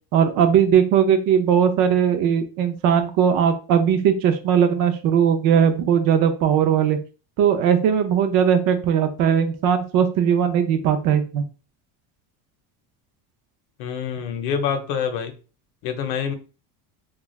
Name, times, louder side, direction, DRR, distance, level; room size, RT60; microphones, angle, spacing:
voice 1, 0.1-7.0 7.4-11.4, right 8 dB, 50° right, 8 dB, 0.4 m, -19 dB
voice 2, 13.8-15.3 15.8-16.3, left 7 dB, 80° left, 7 dB, 0.7 m, -26 dB
3.1 x 2.3 x 2.3 m, 0.34 s
cardioid pair, 150°, 44 cm